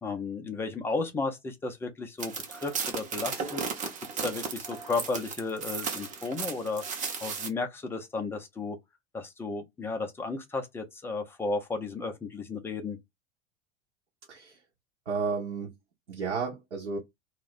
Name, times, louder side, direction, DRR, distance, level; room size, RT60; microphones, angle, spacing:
voice 1, 0.0-3.6 4.2-6.8 7.2-8.8 9.1-13.0, left 3 dB, 5° left, 0.3 m, -33 dB
sound 1, 2.2-7.5, right 5 dB, 20° right, 0.7 m, -35 dB
voice 2, 15.1-15.7 16.1-17.0, right 5 dB, 80° right, 0.9 m, -32 dB
2.3 x 2.1 x 3.9 m
figure-of-eight pair, 85°, 36 cm